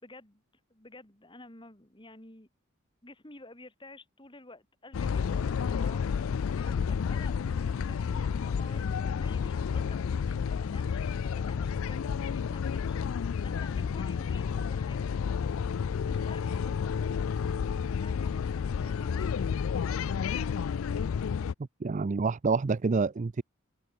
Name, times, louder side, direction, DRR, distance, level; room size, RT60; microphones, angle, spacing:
voice 1, 0.0-0.4 0.7-2.5 3.0-6.0 6.3-15.1 16.0-17.5 17.9-19.5, left 2 dB, 25° left, 3.2 m, -51 dB
sound 1, 4.9-21.5, left 6 dB, 85° left, 0.4 m, -31 dB
voice 2, 21.8-23.4, right 4 dB, 35° right, 0.4 m, -27 dB
open air
head